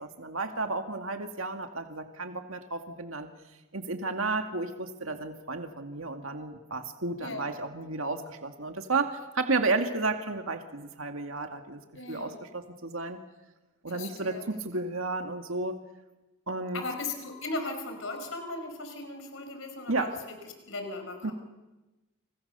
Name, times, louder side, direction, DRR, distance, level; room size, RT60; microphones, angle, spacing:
voice 1, 0.0-3.3 3.7-11.8 12.1-13.2 13.8-15.8 16.5-16.8 19.9-20.1 21.2-21.3, right 3 dB, 75° right, 5 dB, 2.2 m, -32 dB
voice 2, 11.9-12.4 13.9-14.4 16.7-21.3, left 2 dB, 65° left, 6 dB, 5.1 m, -37 dB
30.0 x 28.5 x 6.9 m, 1.1 s
head